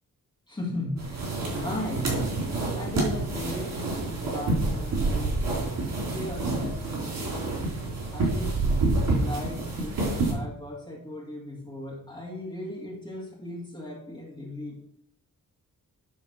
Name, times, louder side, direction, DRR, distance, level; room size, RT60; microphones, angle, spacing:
voice 1, 0.5-2.3 2.7-5.4 6.0-7.5 8.1-8.6 8.9-14.8, left 1 dB, 15° left, -3 dB, 1.9 m, -37 dB
sound 1, 1.0-10.3, right 2 dB, 85° right, 3.4 m, -28 dB
10.0 x 3.8 x 6.2 m, 0.69 s
wide cardioid pair, 180°, 33 cm